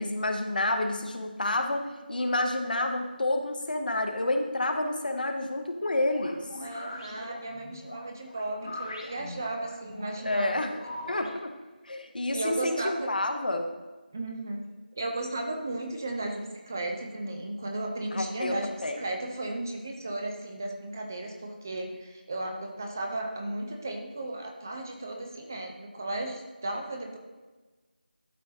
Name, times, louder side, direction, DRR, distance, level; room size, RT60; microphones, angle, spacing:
voice 1, 0.0-6.5 10.2-10.7 11.1-11.5 11.8-13.7 18.1-18.6 18.8-19.0, left 2 dB, 60° left, 5 dB, 0.9 m, -29 dB
sound 1, 6.0-11.3, left 1 dB, 40° left, 1.3 m, -42 dB
voice 2, 6.6-10.6 11.0-11.3 12.3-13.1 14.1-14.6 14.9-27.2, right 2 dB, 20° right, 2 dB, 0.4 m, -35 dB
12.5 x 4.5 x 2.7 m, 1.3 s
figure-of-eight pair, 170°, 5 cm